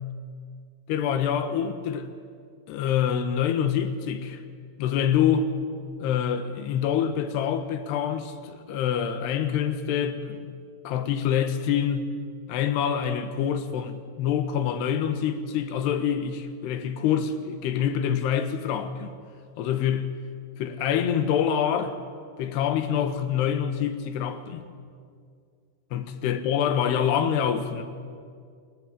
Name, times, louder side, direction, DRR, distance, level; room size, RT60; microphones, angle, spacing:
voice 1, 0.9-2.1 2.7-4.4 4.8-5.5 6.0-10.6 10.8-12.1 12.5-19.1 19.6-20.1 20.6-21.9 22.4-24.6 25.9-27.8, left 8 dB, 75° left, 3.4 m, -26 dB
28.0 x 21.0 x 9.0 m
omnidirectional pair, 4.9 m